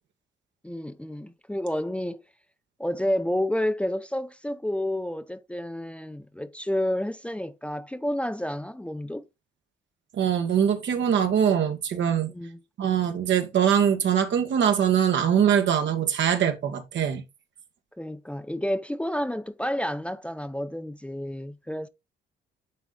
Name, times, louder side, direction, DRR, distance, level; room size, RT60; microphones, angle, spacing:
voice 1, 0.6-2.2 2.8-9.2 12.3-12.6 18.0-21.9, left 1 dB, 5° left, 0.7 m, -30 dB
voice 2, 10.1-12.3 12.8-17.2, right 8 dB, 65° right, 1.6 m, -23 dB
9.4 x 4.2 x 3.8 m
cardioid pair, 90°, 20 cm